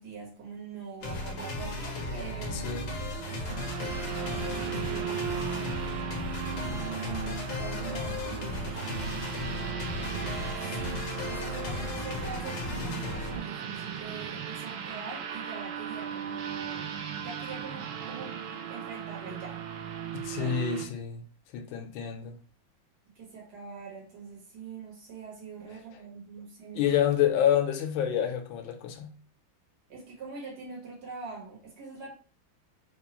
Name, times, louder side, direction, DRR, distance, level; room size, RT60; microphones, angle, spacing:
voice 1, 0.0-2.8 3.4-5.8 7.0-9.1 10.5-16.9 17.2-18.4 18.7-19.6 20.4-20.6 23.2-27.0 29.9-32.1, right 5 dB, 55° right, 1.7 m, -43 dB
sound 1, 1.0-13.4, left 2 dB, 60° left, 1.3 m, -35 dB
voice 2, 2.5-2.9 20.1-21.2 21.5-22.4 26.8-29.1, left 10 dB, 80° left, 1.3 m, -28 dB
sound 2, 3.1-20.9, right 8 dB, 75° right, 1.2 m, -37 dB
4.0 x 2.3 x 2.9 m
omnidirectional pair, 2.1 m